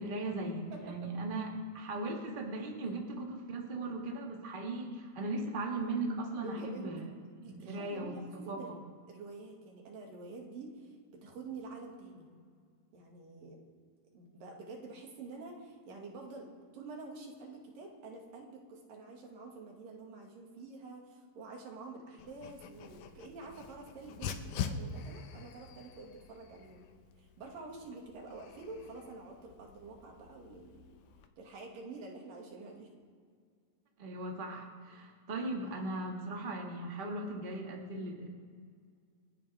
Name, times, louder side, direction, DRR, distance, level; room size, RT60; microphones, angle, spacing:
voice 1, 0.0-7.1 7.5-8.8 34.0-38.3, right 2 dB, 25° right, 0 dB, 1.3 m, -38 dB
voice 2, 0.7-1.1 6.4-8.8 9.1-12.3 12.9-13.6 14.1-26.8 27.2-31.0 31.4-32.9, right 3 dB, 85° right, 0 dB, 3.8 m, -48 dB
Dog, 22.2-31.3, left 6 dB, 75° left, 2.1 m, -45 dB
29.0 x 10.5 x 3.5 m, 2.1 s
omnidirectional pair, 3.8 m